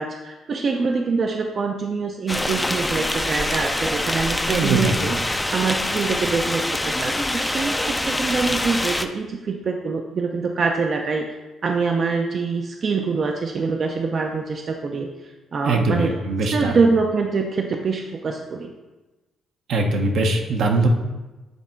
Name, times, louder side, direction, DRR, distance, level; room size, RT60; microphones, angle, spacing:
voice 1, 0.0-16.2 16.5-18.7, right 4 dB, 50° right, 3 dB, 0.5 m, -25 dB
sound 1, 2.3-9.1, left 1 dB, 10° left, 0.5 m, -25 dB
voice 2, 4.5-4.9 15.6-16.7 19.7-20.9, right 2 dB, 70° right, 3 dB, 0.9 m, -21 dB
8.2 x 3.5 x 4.4 m, 1.1 s
cardioid pair, 90°, 0 cm